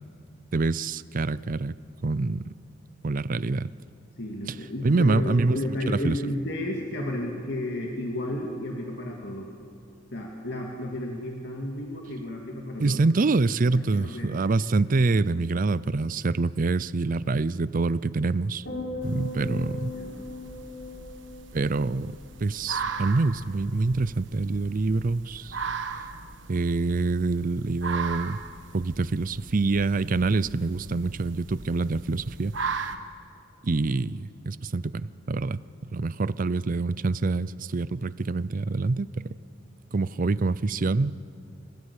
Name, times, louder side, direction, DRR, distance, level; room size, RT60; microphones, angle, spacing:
voice 1, 0.5-1.8 2.0-2.5 3.0-3.7 4.8-5.6 5.9-6.2 12.8-18.7 19.0-20.0 21.5-25.6 26.5-28.4 28.7-32.8 33.6-35.6 35.9-39.3 39.9-41.2, right 3 dB, 45° right, 18 dB, 0.5 m, -26 dB
voice 2, 4.2-9.5 10.1-13.0 13.7-14.4 19.3-19.5 19.9-20.3, left 1 dB, 65° left, 0 dB, 2.2 m, -32 dB
sound 1, 18.7-23.0 23.3-23.8, left 2 dB, 80° left, 6.6 m, -39 dB
sound 2, 19.0-33.0, right 5 dB, 75° right, 1.3 m, -38 dB
29.5 x 16.0 x 8.4 m, 2.3 s
head